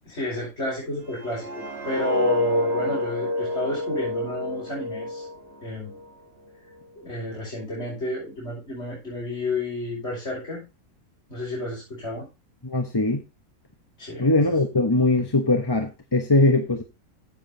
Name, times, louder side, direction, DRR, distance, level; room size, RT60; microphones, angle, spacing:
voice 1, 0.1-1.5 1.8-5.3 5.6-5.9 7.0-10.6 11.3-12.3 14.0-14.3, left 1 dB, 50° left, -7 dB, 5.6 m, -30 dB
sound 1, 1.1-6.1 6.5-6.8, left 1 dB, 45° right, 1.8 m, -28 dB
voice 2, 12.6-13.2 14.2-16.8, left 2 dB, 20° left, 5 dB, 0.9 m, -21 dB
14.5 x 7.3 x 2.7 m, 0.26 s
omnidirectional pair, 1.5 m